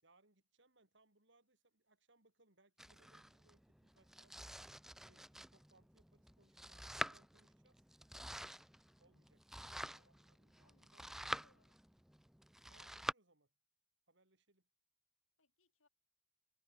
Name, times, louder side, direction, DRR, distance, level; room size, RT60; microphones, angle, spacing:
voice 1, 0.0-4.4 5.1-7.8 9.0-9.5 10.0-11.3 12.7-13.5 14.1-14.7, right 2 dB, 60° right, 5.6 m, -73 dB
Domestic sounds home sounds, 2.8-13.1, right 1 dB, ahead, 0.5 m, -48 dB
voice 2, 9.6-10.1 10.6-11.8 15.4-15.9, left 3 dB, 90° left, 4.9 m, -77 dB
head